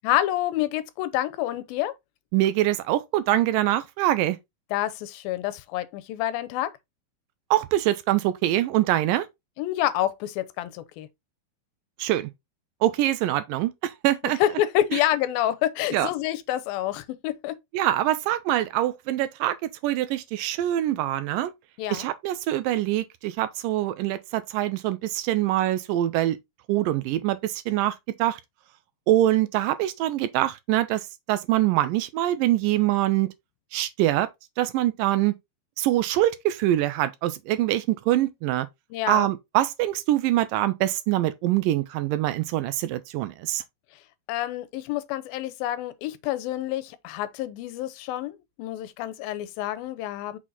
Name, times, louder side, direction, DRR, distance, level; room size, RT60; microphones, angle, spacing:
voice 1, 0.0-1.9 4.7-6.7 9.6-11.1 14.2-17.6 21.8-22.1 38.9-39.3 44.3-50.4, left 13 dB, 90° left, 2.5 m, -28 dB
voice 2, 2.3-4.4 7.5-9.3 12.0-12.3 12.8-14.4 15.9-16.1 17.7-21.5 21.9-26.4 26.7-28.4 29.1-33.3 33.7-34.3 34.6-35.3 35.8-38.7 39.1-43.6, right 14 dB, 80° right, 2.1 m, -24 dB
6.1 x 4.1 x 3.9 m
omnidirectional pair, 4.2 m